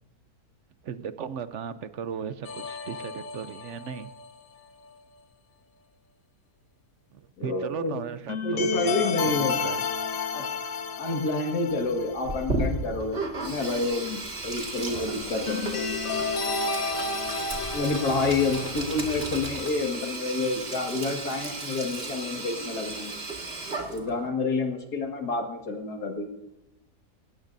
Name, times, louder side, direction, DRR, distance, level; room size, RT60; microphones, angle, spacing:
voice 1, 0.8-4.1 7.1-9.8, right 7 dB, 60° right, 13 dB, 0.8 m, -36 dB
sound 1, 2.5-4.3 8.3-12.7 12.9-13.0 15.5-18.7, left 5 dB, 60° left, 1.4 m, -31 dB
voice 2, 7.4-7.9 8.4-9.6 10.3-10.4 11.0-15.8 17.7-23.1 23.9-26.3, left 3 dB, 80° left, 3 dB, 2.3 m, -28 dB
sound 2, 11.7-19.6, right 2 dB, 25° left, 5.4 m, -46 dB
Sink (filling or washing), 12.2-24.3, right 2 dB, 40° right, 2.1 m, -34 dB
19.0 x 17.0 x 2.6 m, 0.93 s
omnidirectional pair, 1.7 m